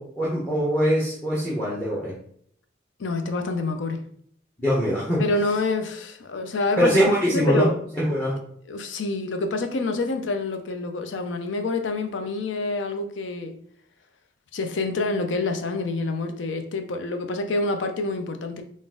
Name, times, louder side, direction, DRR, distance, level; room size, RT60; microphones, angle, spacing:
voice 1, 0.0-2.1 4.6-5.2 6.8-7.7 8.0-8.4, equal, 10° left, -6 dB, 0.8 m, -22 dB
voice 2, 3.0-4.0 5.2-7.0 7.3-7.8 8.7-13.5 14.5-18.6, left 3 dB, 85° left, 7 dB, 0.5 m, -27 dB
3.9 x 2.5 x 3.6 m, 0.64 s
head